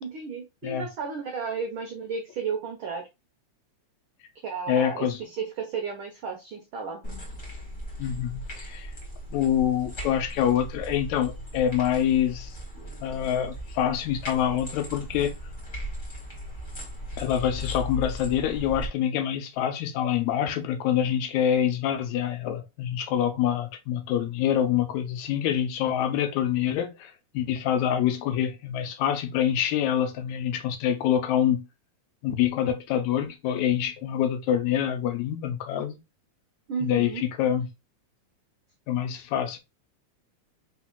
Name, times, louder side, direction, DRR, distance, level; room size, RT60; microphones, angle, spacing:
voice 1, 0.0-3.1 4.4-7.0 36.7-37.3, right 5 dB, 80° right, 1.1 m, -33 dB
voice 2, 4.7-5.2 8.0-8.9 9.3-12.6 13.0-15.4 17.2-31.7 32.2-36.0 36.8-37.7 38.9-39.6, left 10 dB, 75° left, 1.9 m, -26 dB
sound 1, 7.0-18.9, left 1 dB, 30° left, 1.7 m, -38 dB
4.3 x 4.2 x 2.3 m
omnidirectional pair, 3.4 m